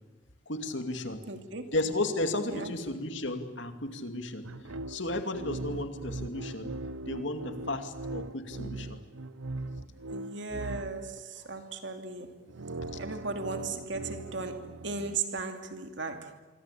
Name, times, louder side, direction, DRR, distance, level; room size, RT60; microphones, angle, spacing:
voice 1, 0.5-1.3 1.7-4.5 4.9-6.8 7.1-9.0, left 2 dB, 65° left, 2.6 m, -33 dB
voice 2, 1.3-1.7 2.5-2.7 10.1-12.5 13.0-16.4, right 3 dB, 60° right, 2.7 m, -37 dB
sound 1, 4.4-11.2 12.3-15.2, right 2 dB, 90° right, 0.8 m, -40 dB
25.5 x 25.5 x 8.5 m
head